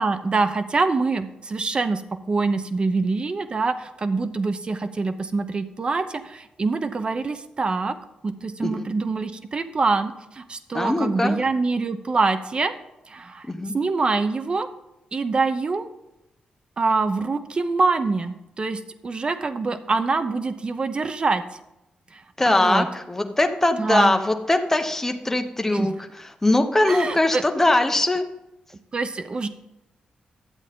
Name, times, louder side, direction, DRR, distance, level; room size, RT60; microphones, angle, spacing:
voice 1, 0.0-2.0 2.3-8.0 8.2-12.7 13.1-13.5 13.7-14.7 15.1-15.9 16.8-21.4 22.1-22.9 23.8-24.1 25.7-26.0 26.9-27.4 28.9-29.5, right 3 dB, 35° right, 10 dB, 0.8 m, -25 dB
voice 2, 10.7-11.4 13.5-13.7 22.4-28.2, left 2 dB, 15° left, 6 dB, 1.0 m, -21 dB
11.5 x 8.0 x 3.7 m, 0.90 s
cardioid pair, 95°, 3 cm